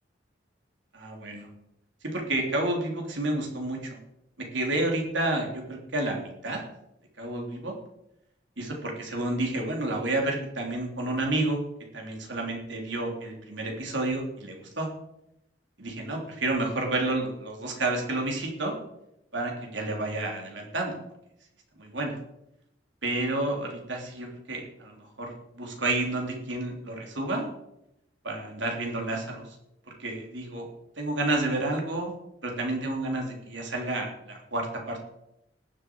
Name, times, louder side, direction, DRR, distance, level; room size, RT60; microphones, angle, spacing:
voice 1, 0.9-1.5 2.1-4.0 4.5-6.6 7.2-7.7 8.6-11.6 11.9-14.9 15.8-18.7 19.3-21.0 21.8-22.1 23.0-27.5 28.2-29.4 30.0-30.7 31.0-32.1 32.4-35.0, right 2 dB, 80° right, 1 dB, 3.5 m, -30 dB
20.0 x 7.5 x 4.8 m, 0.82 s
head